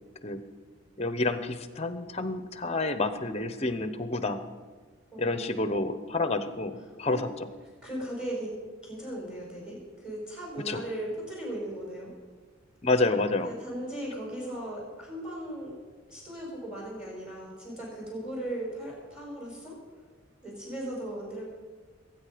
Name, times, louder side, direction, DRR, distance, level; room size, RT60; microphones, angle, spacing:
voice 1, 1.0-4.4 5.2-7.3 10.7-10.8 12.8-13.5, left 2 dB, 30° left, 11 dB, 0.9 m, -29 dB
voice 2, 5.1-5.7 6.8-7.2 7.8-8.5 8.8-12.1 13.4-15.7 16.1-19.8 20.4-21.4, right 1 dB, 5° right, -3 dB, 4.7 m, -37 dB
20.5 x 9.3 x 5.1 m, 1.5 s
head